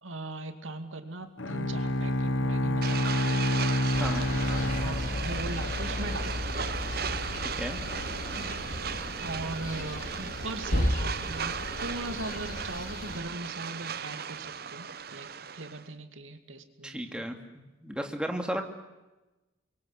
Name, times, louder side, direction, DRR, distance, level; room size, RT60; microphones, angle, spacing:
voice 1, 0.0-3.5 4.8-6.6 8.3-8.6 9.2-17.2, right 2 dB, 90° right, 8 dB, 2.6 m, -39 dB
Bowed string instrument, 1.4-5.8, left 1 dB, 75° left, 1.2 m, -28 dB
sound 1, 2.8-15.9, right 7 dB, 50° right, 0.9 m, -36 dB
sound 2, 3.9-13.2, left 1 dB, 40° left, 2.8 m, -34 dB
voice 2, 7.4-7.8 16.8-17.4 17.8-18.6, equal, 5° right, 4 dB, 2.4 m, -33 dB
29.5 x 23.5 x 8.2 m, 1.1 s
head